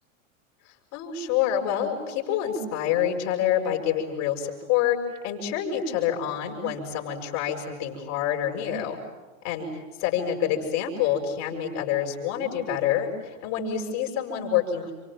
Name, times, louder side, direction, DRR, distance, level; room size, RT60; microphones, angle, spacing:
voice 1, 0.6-5.0 5.2-9.0 9.4-14.9, left 9 dB, 45° left, 1 dB, 6.6 m, -27 dB
29.5 x 24.5 x 7.4 m, 1.4 s
supercardioid pair, 145°, 40 cm